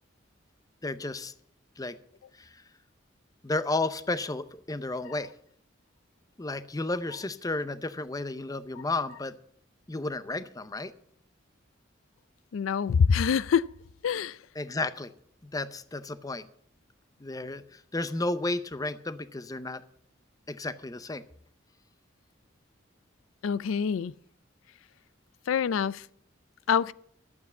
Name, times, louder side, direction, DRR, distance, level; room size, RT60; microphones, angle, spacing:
voice 1, 0.8-1.3 1.8-2.0 2.4-2.6 3.4-5.3 6.4-9.3 9.9-10.9 14.6-15.1 15.4-16.5 17.2-19.8 20.5-21.2, left 2 dB, 20° left, 0.6 m, -32 dB
voice 2, 12.5-13.7 14.0-14.4 23.4-24.1 25.5-26.1 26.7-26.9, left 6 dB, 90° left, 0.4 m, -25 dB
12.0 x 8.5 x 6.9 m
head